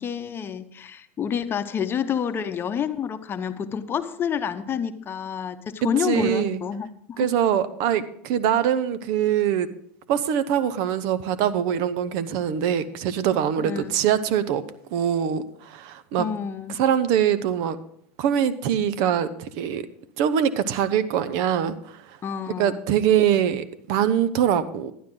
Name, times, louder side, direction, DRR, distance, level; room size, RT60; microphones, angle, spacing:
voice 1, 0.0-7.3 13.6-13.9 16.2-16.8 22.2-22.8, left 7 dB, 30° left, 10 dB, 0.8 m, -28 dB
voice 2, 6.0-6.6 7.2-9.7 10.1-14.6 14.9-16.3 16.8-17.8 18.2-19.9 20.2-21.7 22.6-24.9, right 9 dB, 60° right, 14 dB, 0.8 m, -23 dB
11.0 x 11.0 x 3.8 m, 0.67 s
hypercardioid pair, 100°, 7 cm